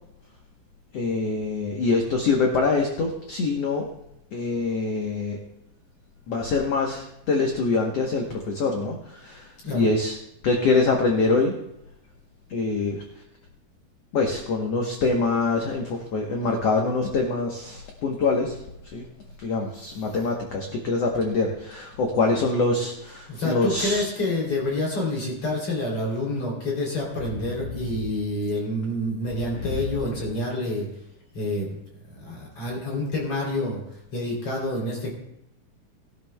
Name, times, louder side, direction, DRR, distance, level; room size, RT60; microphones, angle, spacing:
voice 1, 0.9-3.9 4.3-5.4 6.3-10.1 10.4-11.6 12.5-13.0 14.1-19.1 19.4-24.1 29.6-29.7, left 3 dB, 65° left, 0 dB, 1.7 m, -24 dB
voice 2, 23.3-30.9 31.3-31.7 32.0-33.8 34.1-35.1, left 1 dB, 45° left, -3 dB, 3.9 m, -28 dB
20.0 x 12.0 x 2.2 m, 0.81 s
omnidirectional pair, 4.0 m